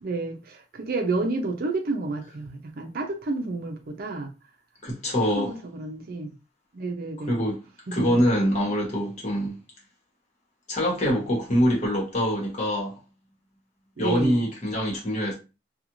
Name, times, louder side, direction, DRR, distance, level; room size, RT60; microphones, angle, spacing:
voice 1, 0.0-4.3 5.3-6.3 6.7-7.4 7.9-8.2 14.0-14.4, right 3 dB, 55° right, 0.5 m, -30 dB
voice 2, 4.8-5.6 7.3-7.6 7.9-9.6 10.7-13.0 14.0-15.3, equal, 40° left, 1.2 m, -24 dB
2.4 x 2.4 x 3.0 m
head